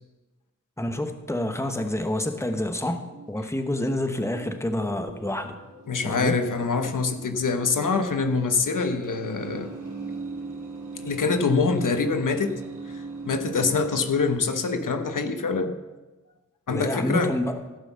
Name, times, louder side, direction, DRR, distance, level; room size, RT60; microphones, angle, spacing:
voice 1, 0.8-5.6 6.0-6.4 16.7-17.6, left 1 dB, 10° left, 6 dB, 1.0 m, -28 dB
sound 1, 2.3-13.9, right 3 dB, 70° right, 2.6 m, -40 dB
voice 2, 5.9-9.7 11.0-12.6 12.9-15.8 16.7-17.3, left 4 dB, 75° left, 7 dB, 1.1 m, -25 dB
15.5 x 6.0 x 6.9 m, 1.1 s
wide cardioid pair, 90°, 31 cm